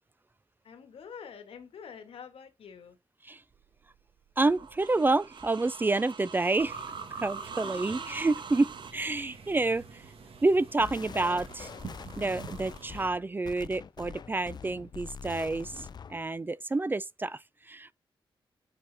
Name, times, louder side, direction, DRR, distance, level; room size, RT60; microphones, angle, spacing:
voice 1, 0.6-3.0 7.4-8.2, left 6 dB, 85° left, 1.4 m, -47 dB
sound 1, 3.5-8.9, right 6 dB, 55° right, 0.6 m, -45 dB
voice 2, 4.4-6.8 7.2-9.8 10.4-11.7 12.2-17.4 17.7-17.9, right 2 dB, 20° right, 0.3 m, -28 dB
sound 2, 6.6-13.1, right 5 dB, 75° right, 1.5 m, -44 dB
sound 3, 10.8-16.3, left 6 dB, 50° left, 0.4 m, -44 dB
8.6 x 4.4 x 3.4 m
cardioid pair, 90°, 9 cm